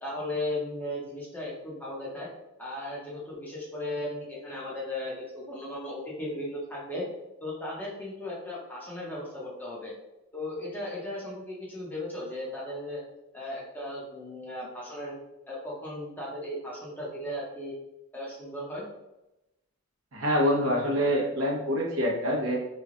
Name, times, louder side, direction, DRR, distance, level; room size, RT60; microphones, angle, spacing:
voice 1, 0.0-2.3 2.6-7.0 7.4-9.9 10.3-13.0 13.3-15.1 15.5-17.7 18.1-18.8, left 1 dB, 10° left, -5 dB, 0.8 m, -36 dB
voice 2, 20.1-22.6, equal, 65° right, -2 dB, 0.9 m, -26 dB
3.1 x 2.3 x 3.7 m, 0.94 s
head